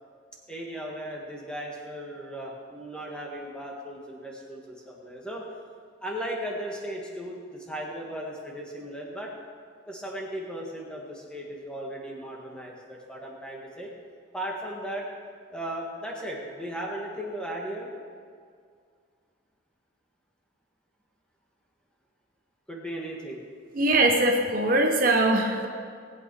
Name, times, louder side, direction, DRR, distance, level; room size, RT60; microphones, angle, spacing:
voice 1, 0.5-5.5 6.0-9.3 9.8-13.9 14.3-15.1 15.5-17.9 22.7-23.4, right 1 dB, 5° left, -2 dB, 1.7 m, -36 dB
voice 2, 23.8-25.7, right 2 dB, 45° right, 2 dB, 0.9 m, -22 dB
19.0 x 8.6 x 4.8 m, 2.2 s
head